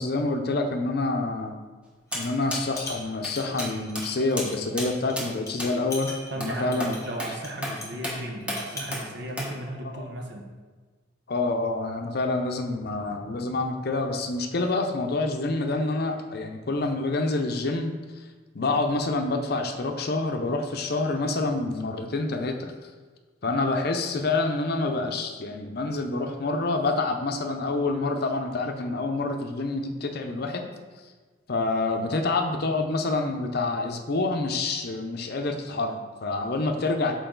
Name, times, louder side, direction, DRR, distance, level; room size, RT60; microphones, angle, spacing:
voice 1, 0.0-1.6 2.1-6.9 9.9-10.0 11.3-18.2 18.5-22.9 23.4-30.7 31.5-37.1, left 3 dB, 55° left, 5 dB, 0.6 m, -27 dB
sound 1, 2.1-2.4 2.7-5.1 5.5-5.6 5.9-8.0 8.4-9.0, left 2 dB, 15° left, 1.1 m, -40 dB
sound 2, 2.1-2.2 2.5-2.6 3.2-3.3 3.6-3.7 4.0-4.1 4.4-4.5 4.8-4.9 5.2-5.3 5.6-5.7 6.4-6.5 6.8-6.9 7.2-7.3 7.6-7.8 8.0-8.2 8.5-8.6 8.9-9.0 9.4-9.5, equal, 5° right, 1.0 m, -32 dB
voice 2, 6.3-10.4, right 1 dB, 60° right, 1 dB, 1.0 m, -35 dB
6.8 x 4.6 x 3.8 m, 1.4 s
head